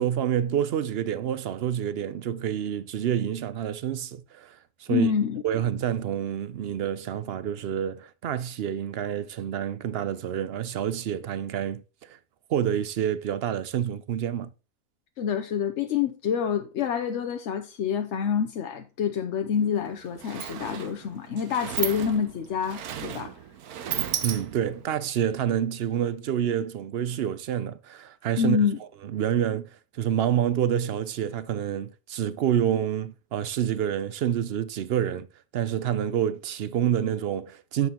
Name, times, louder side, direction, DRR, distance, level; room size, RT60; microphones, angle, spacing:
voice 1, 0.0-5.1 5.4-12.2 12.5-14.5 24.2-28.6 29.1-29.7 29.9-35.3 35.5-37.9, right 10 dB, 65° right, 0.6 m, -28 dB
voice 2, 4.9-5.4 15.2-23.3 28.4-28.8, left 7 dB, 60° left, 0.9 m, -27 dB
Sliding door, 19.5-19.7 19.9-24.9, right 9 dB, 80° right, 1.3 m, -34 dB
9.3 x 7.0 x 2.9 m
omnidirectional pair, 1.6 m